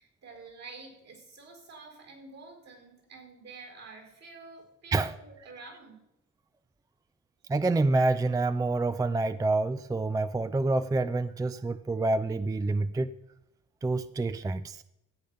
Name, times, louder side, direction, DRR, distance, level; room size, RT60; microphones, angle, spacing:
voice 1, 0.0-6.0, right 3 dB, 60° right, 4.6 m, -49 dB
voice 2, 7.5-13.1 13.8-14.8, right 2 dB, 10° right, 0.4 m, -27 dB
13.5 x 8.5 x 5.5 m
cardioid pair, 90°, 30 cm